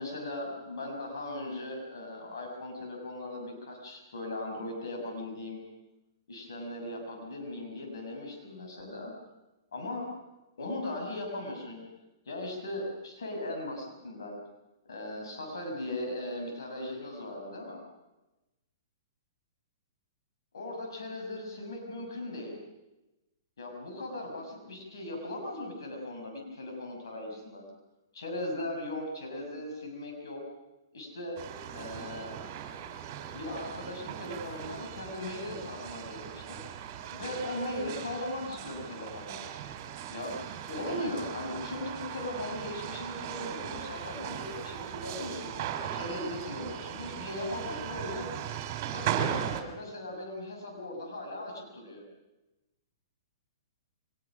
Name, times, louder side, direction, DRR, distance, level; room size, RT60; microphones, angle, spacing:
voice 1, 0.0-5.6 6.3-9.1 9.7-10.1 10.6-11.8 12.2-14.4 14.9-17.8 20.5-22.6 23.6-27.6 28.1-30.4 30.9-31.4 31.7-32.4 33.3-36.6 37.1-39.4 40.1-40.3 40.7-45.6 45.9-48.3 48.9-52.0, left 1 dB, 85° left, 1 dB, 6.4 m, -38 dB
sound 1, 31.4-49.6, right 9 dB, 45° right, 3.5 m, -38 dB
23.5 x 20.5 x 6.3 m, 1.0 s
hypercardioid pair, 145°, 2 cm